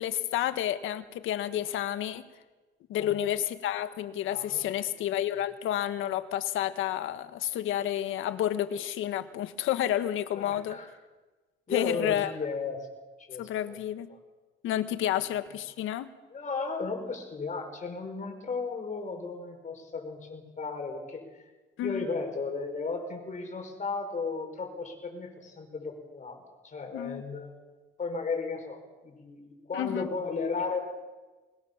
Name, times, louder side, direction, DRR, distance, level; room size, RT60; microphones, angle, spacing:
voice 1, 0.0-2.2 2.9-10.8 11.7-12.3 13.4-14.1 14.6-16.1 21.8-22.1 26.9-27.2 29.7-30.1, left 11 dB, 90° left, 11 dB, 1.5 m, -30 dB
voice 2, 4.3-4.9 10.4-10.9 11.7-12.9 13.2-13.8 14.1-14.2 15.2-15.3 16.3-21.2 21.8-30.8, left 4 dB, 40° left, 3 dB, 6.3 m, -35 dB
22.0 x 20.5 x 7.4 m, 1.2 s
cardioid pair, 90°, 20 cm